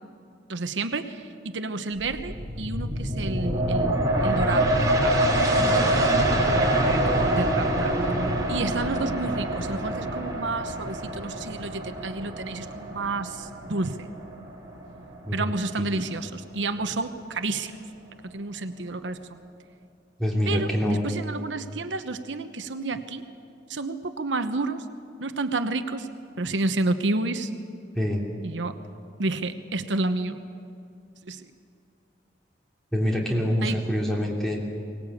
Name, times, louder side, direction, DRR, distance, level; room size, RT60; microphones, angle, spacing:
voice 1, 0.5-4.7 5.0-5.1 5.4-5.9 6.5-7.9 8.5-14.1 15.3-17.7 18.2-19.4 20.5-23.2 23.7-24.8 25.2-26.1 26.4-27.5 28.4-28.8 29.2-30.4 31.2-31.5 33.6-33.8, right 3 dB, 85° right, 9 dB, 1.0 m, -30 dB
sound 1, 2.0-15.3 15.7-15.8, right 1 dB, 20° right, 3.1 m, -25 dB
voice 2, 15.2-15.9 20.2-21.0 27.9-28.3 32.9-34.6, equal, ahead, -2 dB, 3.2 m, -26 dB
23.5 x 19.0 x 8.5 m, 2.6 s
head